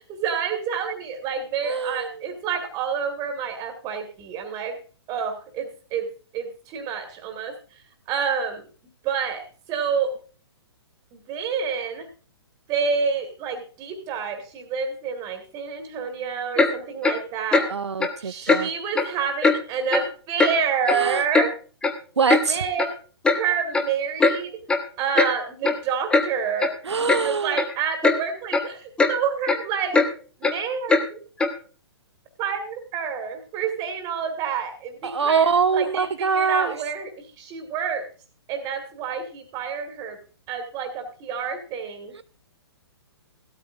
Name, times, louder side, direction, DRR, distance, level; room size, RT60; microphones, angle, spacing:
voice 1, 0.1-4.8 5.1-7.8 8.1-8.7 9.0-10.2 11.1-12.1 12.7-17.7 18.2-21.5 22.5-22.9 23.3-24.6 25.0-30.0 30.4-31.2 32.4-38.1 38.5-40.2 40.5-42.1, right 6 dB, 25° right, 4 dB, 1.8 m, -28 dB
voice 2, 1.6-2.3 17.7-18.7 20.9-21.2 22.2-22.6 26.8-27.6 35.0-36.8 42.1-42.2, right 5 dB, 75° right, 10 dB, 0.5 m, -24 dB
Clock, 16.6-16.7 17.0-17.2 17.5-17.7 18.0-18.1 18.5-18.6 18.9-19.1 19.4-19.6 19.9-20.1 20.4-20.5 20.9-21.5 21.8-21.9 22.3-22.4 22.8-22.9 23.2-23.4 23.7-23.9 24.2-24.4 24.7-24.8 25.1-25.3 25.6-25.8 26.1-26.3 26.6-26.7 27.1-27.2 27.5-27.7 28.0-28.2 28.5-28.7 29.0-29.1 29.4-29.6 29.9-30.1 30.4-30.5 30.9-31.0 31.4-31.5, left 3 dB, 5° left, 0.6 m, -20 dB
15.5 x 13.0 x 2.5 m, 0.38 s
figure-of-eight pair, 120°, 14 cm